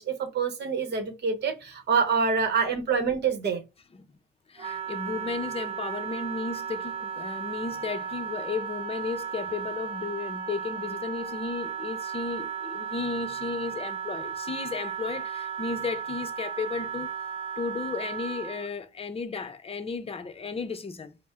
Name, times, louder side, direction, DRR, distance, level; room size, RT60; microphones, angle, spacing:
voice 1, 0.0-3.6, right 5 dB, 60° right, 0.9 m, -26 dB
voice 2, 4.5-17.1 17.6-21.2, left 4 dB, 30° left, 0.6 m, -34 dB
Wind instrument woodwind instrument, 4.6-18.7, right 7 dB, 30° right, 1.0 m, -35 dB
4.2 x 2.1 x 3.6 m
cardioid pair, 90°, 20 cm